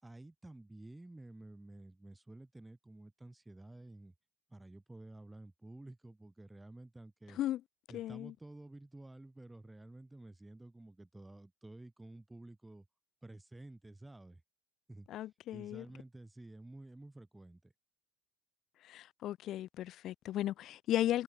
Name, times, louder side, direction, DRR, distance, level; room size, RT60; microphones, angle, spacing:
voice 1, 0.0-4.1 4.5-7.4 7.9-12.9 13.2-14.4 14.9-17.7, right 2 dB, 5° right, 3.2 m, -52 dB
voice 2, 7.9-8.3 15.1-15.8 18.9-21.2, left 13 dB, 50° left, 0.7 m, -35 dB
supercardioid pair, 120°, 0 cm